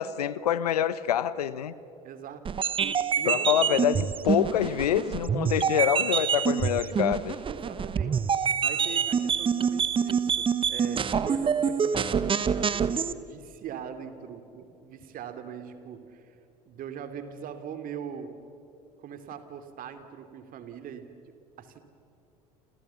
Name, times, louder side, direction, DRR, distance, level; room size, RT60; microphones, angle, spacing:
voice 1, 0.0-1.7 3.2-7.4, left 10 dB, 75° left, 1.0 m, -26 dB
voice 2, 2.0-3.8 7.4-8.2 8.6-16.4 16.7-18.3 19.0-21.1 21.6-21.8, right 8 dB, 45° right, 2.9 m, -41 dB
sound 1, 2.4-13.1, right 7 dB, 25° right, 1.1 m, -26 dB
29.0 x 28.0 x 7.1 m
figure-of-eight pair, 70°, 20 cm